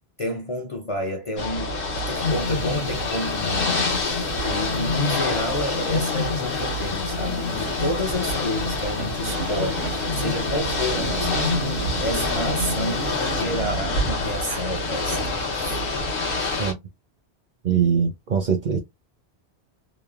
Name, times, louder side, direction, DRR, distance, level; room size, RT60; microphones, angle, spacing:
voice 1, 0.2-13.0 13.3-15.8, left 1 dB, 40° left, 0.5 m, -30 dB
Ocean / Boat Water vehicle, 1.4-16.7, left 2 dB, 60° left, 1.0 m, -27 dB
sound 1, 2.1-14.0, left 4 dB, 80° left, 1.2 m, -31 dB
sound 2, 7.3-15.3, right 6 dB, 85° right, 0.9 m, -37 dB
voice 2, 17.6-18.8, right 7 dB, 60° right, 0.5 m, -22 dB
3.0 x 2.0 x 2.4 m
omnidirectional pair, 1.1 m